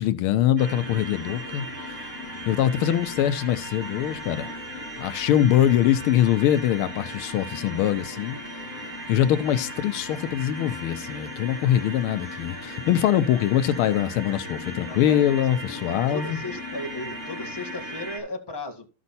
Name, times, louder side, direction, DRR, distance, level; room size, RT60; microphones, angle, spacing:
voice 1, 0.0-1.7 2.5-4.5 5.0-8.4 9.1-16.4, left 11 dB, 80° left, 1.6 m, -23 dB
sound 1, 0.6-18.2, equal, 40° right, 3.9 m, -37 dB
voice 2, 14.9-15.3 15.6-18.9, left 1 dB, 15° left, 1.4 m, -36 dB
14.0 x 5.3 x 4.1 m
omnidirectional pair, 2.4 m